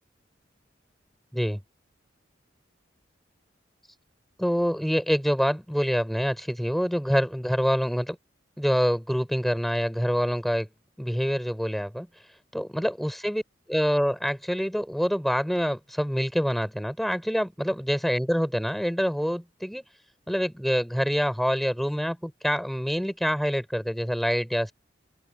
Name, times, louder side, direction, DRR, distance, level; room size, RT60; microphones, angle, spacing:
voice 1, 4.4-8.2 8.6-10.7 11.0-12.1 12.5-13.4 13.7-19.8 20.3-24.7, equal, ahead, 5.3 m, -26 dB
open air
head